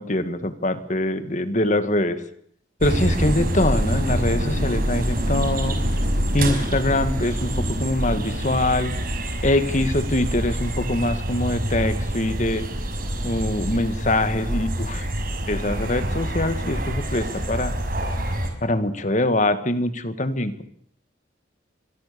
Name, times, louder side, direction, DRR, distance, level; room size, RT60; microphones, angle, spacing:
voice 1, 0.0-2.2 2.8-5.8 6.3-8.9 9.4-12.7 13.2-15.1 15.5-17.7 18.6-20.6, left 1 dB, 40° left, 11 dB, 2.0 m, -23 dB
sound 1, 2.8-18.5, equal, 50° right, 5.6 m, -26 dB
27.5 x 22.5 x 7.0 m, 0.65 s
head